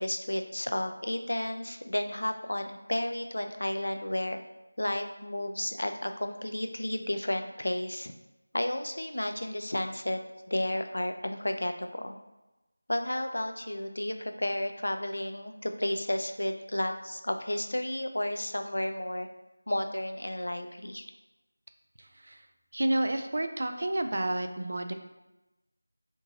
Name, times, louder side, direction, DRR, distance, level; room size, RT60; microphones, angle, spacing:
voice 1, 0.0-4.4 4.8-8.1 8.5-10.2 10.5-12.2 12.9-19.3 19.7-21.0, left 1 dB, 75° left, 6 dB, 0.3 m, -32 dB
voice 2, 22.0-22.4 22.7-24.9, right 1 dB, 55° right, 7 dB, 0.3 m, -30 dB
3.8 x 3.7 x 2.4 m, 1.0 s
figure-of-eight pair, 170°, 0 cm